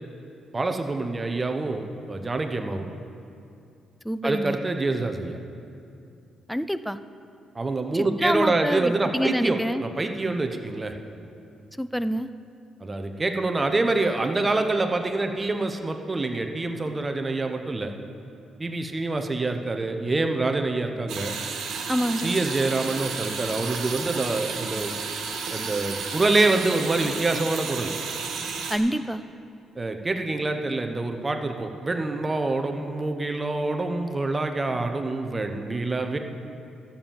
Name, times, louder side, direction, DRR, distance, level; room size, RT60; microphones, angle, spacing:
voice 1, 0.5-2.8 4.2-5.4 7.5-10.9 12.8-17.9 18.6-21.3 22.2-24.9 25.5-27.9 29.8-36.2, right 2 dB, 25° right, 6 dB, 1.0 m, -26 dB
voice 2, 4.0-4.6 6.5-7.0 7.9-9.8 11.8-12.3 21.9-22.4 28.7-29.2, equal, ahead, 13 dB, 0.4 m, -26 dB
sound 1, 21.1-28.8, right 5 dB, 75° right, 1.6 m, -32 dB
13.0 x 7.2 x 7.3 m, 2.6 s
cardioid pair, 90°, 0 cm